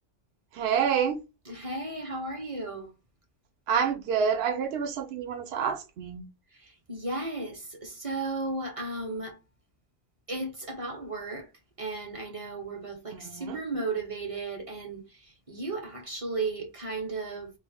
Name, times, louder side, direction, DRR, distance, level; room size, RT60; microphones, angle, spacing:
voice 1, 0.5-1.2 3.7-6.2 13.1-13.6, right 7 dB, 60° right, 0.9 m, -28 dB
voice 2, 1.5-2.9 6.5-9.4 10.3-11.5 11.8-17.5, right 3 dB, 35° right, 0.7 m, -35 dB
3.2 x 2.5 x 3.4 m
omnidirectional pair, 1.2 m